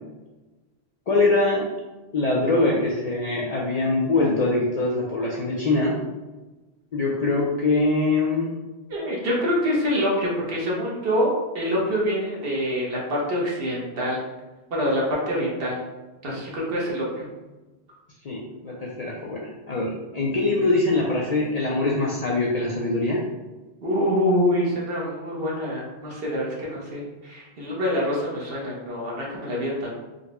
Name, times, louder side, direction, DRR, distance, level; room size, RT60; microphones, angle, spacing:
voice 1, 1.1-1.7 2.1-5.9 6.9-8.5 18.2-23.2, left 2 dB, 55° left, -4 dB, 0.4 m, -23 dB
voice 2, 8.9-14.2 14.7-15.8 16.2-17.3 23.8-29.9, equal, 65° right, -4 dB, 1.1 m, -25 dB
3.8 x 2.1 x 2.9 m, 1.2 s
omnidirectional pair, 1.1 m